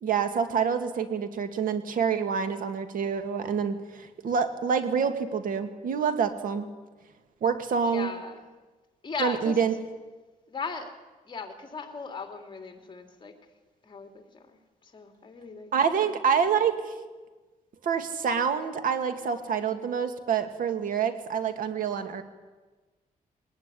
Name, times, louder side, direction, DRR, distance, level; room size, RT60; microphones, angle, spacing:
voice 1, 0.0-6.7 7.4-8.1 9.2-9.7 15.7-16.9 17.8-22.2, right 6 dB, 75° right, 8 dB, 2.2 m, -27 dB
voice 2, 7.8-8.5 9.0-9.6 10.5-10.9 11.3-13.3 13.8-16.1, left 4 dB, 35° left, 5 dB, 2.9 m, -38 dB
21.0 x 19.5 x 10.0 m, 1.3 s
wide cardioid pair, 130°, 14 cm